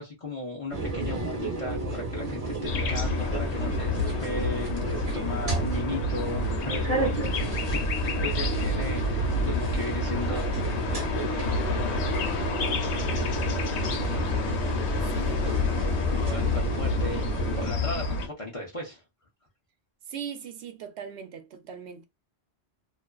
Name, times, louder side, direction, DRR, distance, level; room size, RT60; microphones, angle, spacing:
voice 1, 0.0-7.8 8.0-10.5 16.1-19.0, left 2 dB, 40° left, 0.6 m, -36 dB
sound 1, 0.7-17.7, right 2 dB, 35° right, 0.9 m, -32 dB
sound 2, 2.7-18.3, left 3 dB, 85° left, 0.9 m, -29 dB
voice 2, 15.1-15.5 20.1-22.0, right 8 dB, 75° right, 0.8 m, -39 dB
2.4 x 2.4 x 2.2 m
omnidirectional pair, 1.1 m